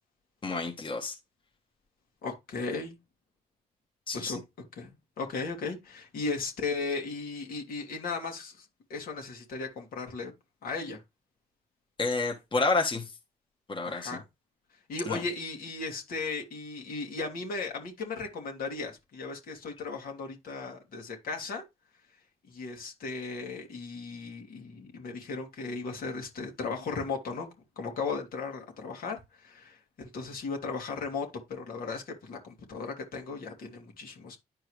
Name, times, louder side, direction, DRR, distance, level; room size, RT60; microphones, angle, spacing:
voice 1, 0.4-1.1 4.1-4.3 12.0-13.1 13.7-14.2 15.1-15.2, left 3 dB, 30° left, 1.6 m, -29 dB
voice 2, 2.2-3.0 4.1-4.4 4.8-4.9 5.2-10.3 10.6-11.0 13.8-14.2 14.9-21.7 22.5-27.5 27.8-34.4, left 4 dB, 65° left, 2.4 m, -36 dB
10.5 x 4.6 x 3.2 m
supercardioid pair, 60°, 16 cm